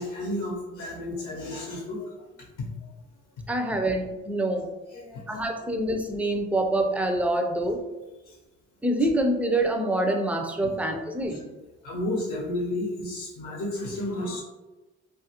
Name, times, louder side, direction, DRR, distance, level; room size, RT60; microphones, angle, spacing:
voice 1, 0.0-2.1 4.5-4.6 4.9-5.4 8.3-8.4 10.6-10.8 11.3-11.4 11.8-14.4, left 1 dB, 85° left, -3 dB, 0.7 m, -32 dB
voice 2, 3.5-4.7 5.3-7.8 8.8-11.4, right 1 dB, 5° right, 4 dB, 0.3 m, -26 dB
2.8 x 2.4 x 2.8 m, 1.1 s
cardioid pair, 90°, 30 cm